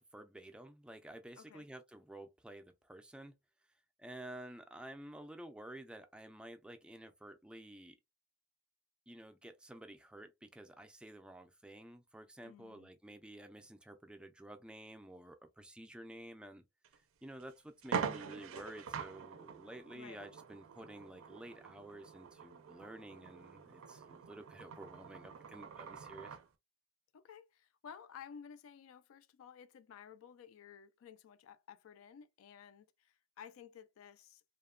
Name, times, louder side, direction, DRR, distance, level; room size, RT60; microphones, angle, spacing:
voice 1, 0.0-3.3 4.0-8.0 9.1-16.6 17.2-26.4, right 1 dB, 5° right, 0.3 m, -51 dB
voice 2, 1.4-1.7 12.4-12.9 19.9-20.2 27.1-34.4, left 7 dB, 85° left, 0.3 m, -54 dB
sound 1, 16.8-17.0 17.4-17.5 17.8-26.5, right 6 dB, 85° right, 0.4 m, -45 dB
2.8 x 2.1 x 2.3 m
head